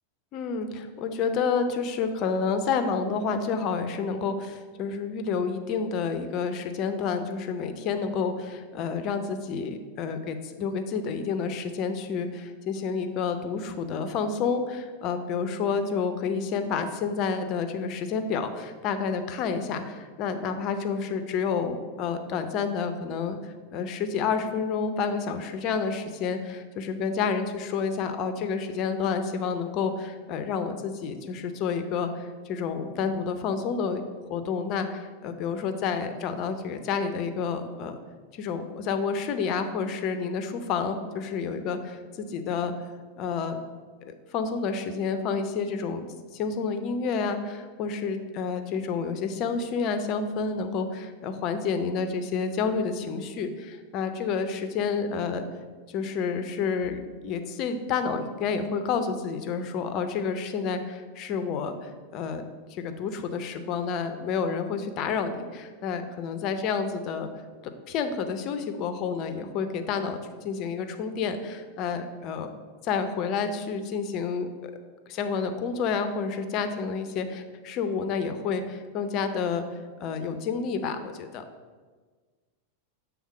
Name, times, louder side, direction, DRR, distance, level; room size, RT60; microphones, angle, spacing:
voice 1, 0.3-34.0 34.3-38.0 38.4-42.7 43.2-43.6 44.3-46.0 46.3-55.4 55.9-62.4 62.7-67.3 67.6-72.5 72.8-74.7 75.1-79.6 80.0-81.4, left 5 dB, 40° left, 8 dB, 0.6 m, -29 dB
7.3 x 3.5 x 6.0 m, 1.5 s
figure-of-eight pair, 90°, 0 cm